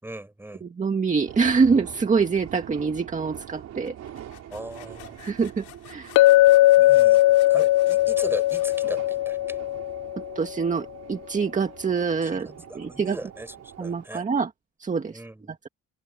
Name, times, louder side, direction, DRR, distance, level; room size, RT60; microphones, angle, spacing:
voice 1, 0.0-0.6 4.5-5.2 6.8-7.2 7.5-9.6 12.2-14.2 15.1-15.6, right 1 dB, 10° right, 5.2 m, -38 dB
voice 2, 0.6-4.0 5.2-6.2 10.2-12.5 12.7-13.2 13.8-14.5 14.8-15.2 15.5-15.7, right 5 dB, 25° right, 1.9 m, -25 dB
sound 1, 1.1-14.1, right 11 dB, 60° right, 4.3 m, -44 dB
sound 2, 3.8-9.5, left 16 dB, 90° left, 5.1 m, -51 dB
Chink clink, 6.2-10.3, left 16 dB, 75° left, 0.6 m, -18 dB
cardioid pair, 115°, 29 cm